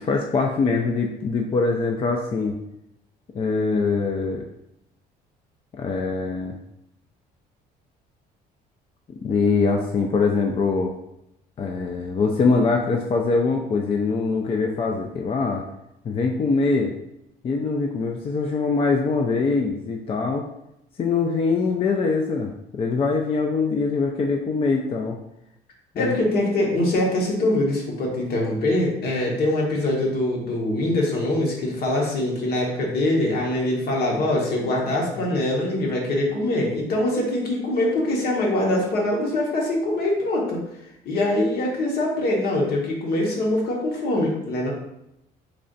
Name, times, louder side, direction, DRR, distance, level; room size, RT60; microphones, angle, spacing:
voice 1, 0.0-2.6 3.3-4.4 5.7-6.6 9.2-10.9 11.6-15.6 16.0-16.9 17.4-20.5 21.0-25.2 26.0-26.2 26.7-26.8, left 4 dB, 35° left, 2 dB, 0.4 m, -23 dB
voice 2, 26.0-40.6 41.0-44.7, left 1 dB, 65° left, -1 dB, 1.1 m, -23 dB
3.2 x 2.5 x 3.9 m, 0.83 s
cardioid pair, 110°, 17 cm